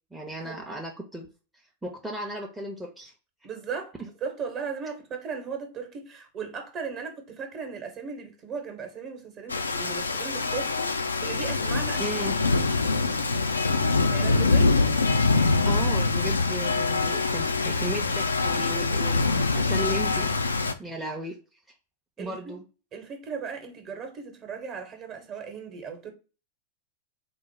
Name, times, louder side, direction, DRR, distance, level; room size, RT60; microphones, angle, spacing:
voice 1, 0.1-1.3 1.5-3.1 12.0-12.3 15.6-20.3 20.8-21.4 22.2-22.6, right 1 dB, 5° right, 0.6 m, -35 dB
voice 2, 3.4-12.1 12.8-13.2 13.7-14.8 22.2-22.6 22.9-26.1, right 5 dB, 35° right, 0.9 m, -37 dB
Rain, 9.5-20.7, left 3 dB, 75° left, 0.3 m, -24 dB
3.8 x 2.0 x 3.2 m
figure-of-eight pair, 90°, 0 cm